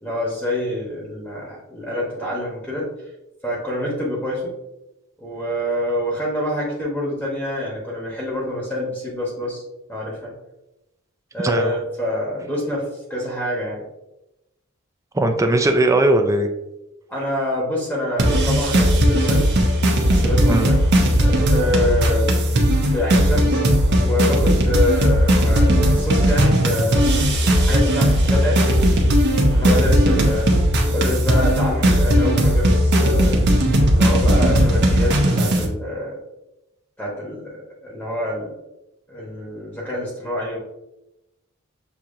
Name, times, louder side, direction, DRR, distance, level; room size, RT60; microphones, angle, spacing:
voice 1, 0.0-2.9 3.4-4.5 5.2-9.6 9.9-10.3 11.3-13.8 17.1-19.6 20.1-20.8 21.2-22.3 22.9-23.7 24.0-27.2 27.6-28.8 29.5-30.5 30.9-33.4 33.9-36.2 37.0-37.6 37.8-38.5 39.1-40.6, left 1 dB, 5° left, -5 dB, 1.0 m, -26 dB
voice 2, 11.4-11.8 15.1-16.5 20.5-20.7, right 1 dB, 15° right, 5 dB, 0.4 m, -18 dB
sound 1, 18.2-35.7, equal, 55° right, 0.8 m, -17 dB
6.9 x 2.9 x 2.5 m, 0.93 s
head